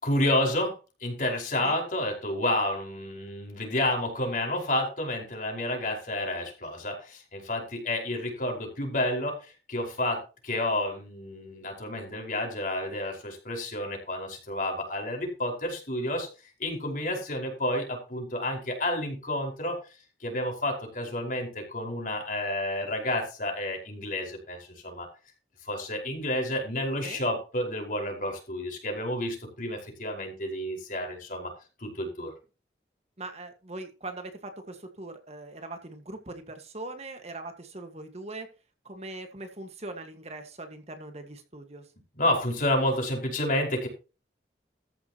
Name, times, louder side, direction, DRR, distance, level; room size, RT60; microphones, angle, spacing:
voice 1, 0.0-0.7 1.0-16.3 16.6-19.8 20.2-25.1 25.6-31.5 31.8-32.3 42.1-43.9, left 1 dB, 50° left, 2 dB, 5.2 m, -30 dB
voice 2, 33.2-38.5 38.9-41.8, right 2 dB, 35° right, 6 dB, 1.7 m, -41 dB
14.0 x 11.0 x 3.0 m, 0.32 s
head